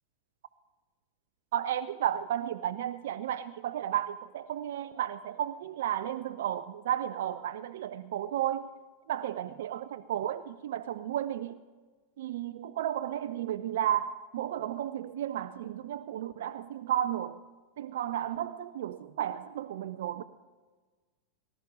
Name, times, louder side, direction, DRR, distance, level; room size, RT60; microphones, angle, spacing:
voice 1, 1.5-8.7 9.1-11.6 12.2-17.4 17.8-20.2, right 11 dB, 55° right, 0.4 m, -33 dB
19.0 x 10.5 x 5.1 m
figure-of-eight pair, 90°, 0 cm